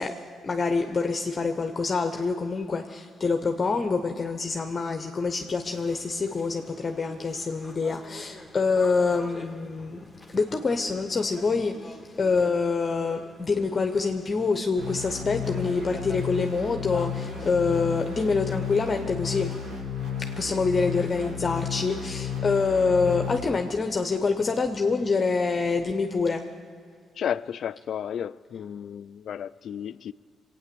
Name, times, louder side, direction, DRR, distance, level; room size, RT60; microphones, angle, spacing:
voice 1, 0.0-10.1 10.3-19.5 20.2-26.4, left 4 dB, 35° left, 0.8 m, -26 dB
sound 1, 5.6-23.1, left 1 dB, ahead, 1.7 m, -48 dB
sound 2, 14.8-23.4, left 7 dB, 70° right, 3.0 m, -33 dB
voice 2, 27.2-30.1, left 9 dB, 65° left, 0.3 m, -33 dB
23.0 x 9.1 x 6.9 m
cardioid pair, 90°, 0 cm